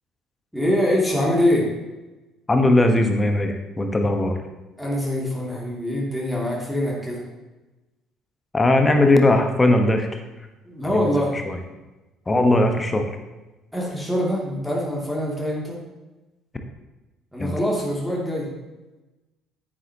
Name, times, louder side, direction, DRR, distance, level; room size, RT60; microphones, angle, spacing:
voice 1, 0.5-1.7 4.8-7.2 10.6-11.4 13.7-15.8 17.3-18.5, left 1 dB, ahead, -4 dB, 2.7 m, -24 dB
voice 2, 2.5-4.4 8.5-10.2 10.9-11.6 12.3-13.0 17.4-17.5, left 2 dB, 20° left, 5 dB, 1.2 m, -19 dB
10.0 x 9.4 x 3.0 m, 1.1 s
figure-of-eight pair, 50°, 0 cm